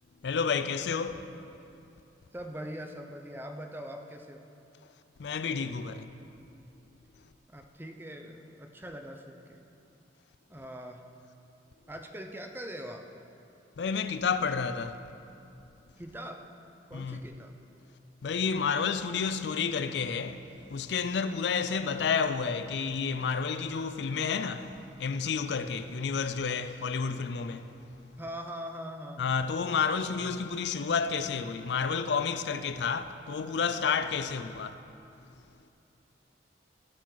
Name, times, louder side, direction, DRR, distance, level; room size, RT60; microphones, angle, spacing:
voice 1, 0.2-1.3 5.2-6.2 13.8-15.0 16.9-17.2 18.2-27.7 29.2-34.7, left 5 dB, 65° left, 0.4 m, -30 dB
voice 2, 2.3-4.5 7.5-9.6 10.5-11.0 11.9-13.1 16.0-16.4 16.9-17.6 28.2-29.3, equal, 10° right, 0.7 m, -42 dB
17.0 x 7.4 x 3.9 m
head